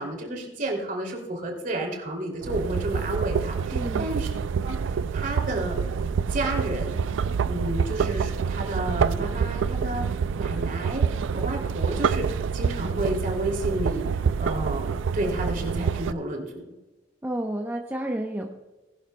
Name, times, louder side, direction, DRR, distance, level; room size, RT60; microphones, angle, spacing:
voice 1, 0.0-4.3 4.6-5.8 6.3-7.0 7.4-16.6, right 1 dB, 45° right, 2 dB, 2.7 m, -31 dB
sound 1, 2.4-16.1, right 6 dB, 90° right, 0.4 m, -27 dB
voice 2, 3.7-4.1 17.2-18.5, right 1 dB, 10° right, 1 dB, 0.7 m, -30 dB
19.5 x 11.5 x 2.2 m, 1.1 s
head